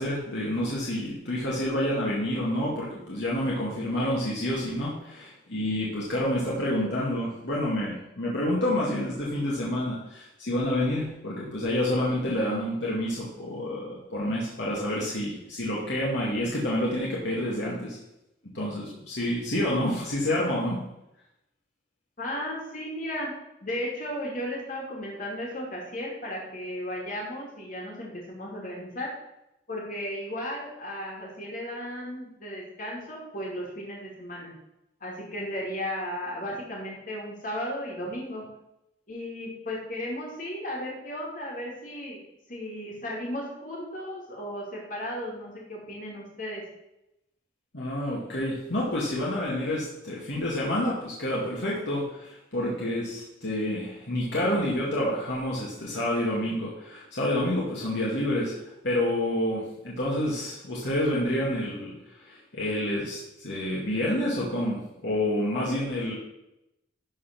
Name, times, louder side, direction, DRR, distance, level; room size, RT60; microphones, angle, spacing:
voice 1, 0.0-18.0 18.5-20.8 47.7-66.2, left 1 dB, 65° left, -6 dB, 2.1 m, -28 dB
voice 2, 22.2-23.3 23.6-29.1 29.7-34.5 35.0-38.4 39.1-42.2 42.5-46.6, equal, 45° left, -3 dB, 2.5 m, -35 dB
12.5 x 4.3 x 5.9 m, 0.88 s
head